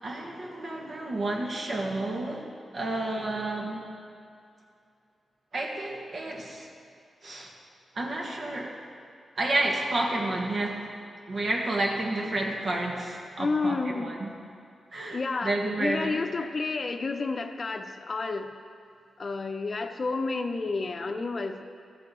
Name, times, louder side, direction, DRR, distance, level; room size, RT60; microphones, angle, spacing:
voice 1, 0.0-3.8 5.5-6.7 7.2-7.5 7.9-8.8 9.4-10.9 11.3-14.3 14.9-16.2, right 2 dB, 55° right, 0 dB, 1.5 m, -30 dB
voice 2, 13.4-14.1 15.1-15.5 15.8-18.5 19.2-21.6, left 3 dB, 45° left, 7 dB, 0.7 m, -30 dB
13.5 x 7.6 x 3.8 m, 2.4 s
cardioid pair, 60°, 0 cm